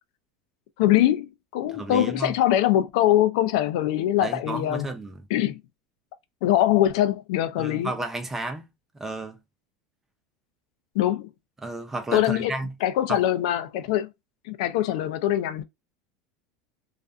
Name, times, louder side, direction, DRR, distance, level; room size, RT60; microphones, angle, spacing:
voice 1, 0.8-4.9 5.3-5.6 6.4-7.9 11.0-11.3 12.1-12.5 12.8-14.1 14.4-15.6, left 13 dB, 70° left, 0.4 m, -23 dB
voice 2, 1.7-2.3 4.2-5.2 7.6-8.6 9.0-9.4 11.6-12.7 13.1-13.2, right 2 dB, 10° right, 0.5 m, -32 dB
2.4 x 2.4 x 2.3 m
supercardioid pair, 140°, 3 cm